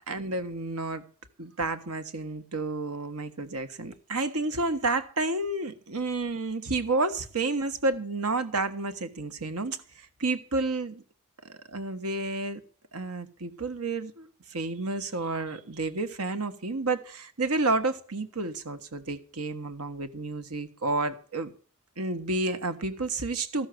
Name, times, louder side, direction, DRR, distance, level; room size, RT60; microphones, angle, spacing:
voice 1, 0.1-1.0 1.4-11.0 11.4-12.6 12.9-21.5 22.0-23.7, right 3 dB, 85° right, 10 dB, 1.5 m, -30 dB
14.5 x 6.4 x 7.9 m, 0.42 s
head